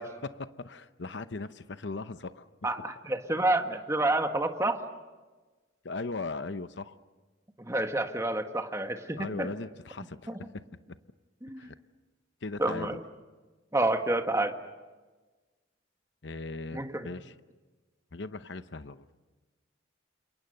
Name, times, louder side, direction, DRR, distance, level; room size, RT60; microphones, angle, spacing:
voice 1, 0.0-2.5 5.8-7.0 9.2-10.6 11.6-11.7 12.4-12.9 16.2-17.3 18.1-19.1, left 3 dB, 60° left, 12 dB, 0.8 m, -38 dB
voice 2, 2.6-4.8 7.6-9.5 10.3-10.4 11.4-11.7 12.6-13.0 13.7-14.5 16.7-17.1, right 2 dB, 15° right, 6 dB, 1.6 m, -29 dB
29.5 x 27.5 x 6.7 m, 1.3 s
head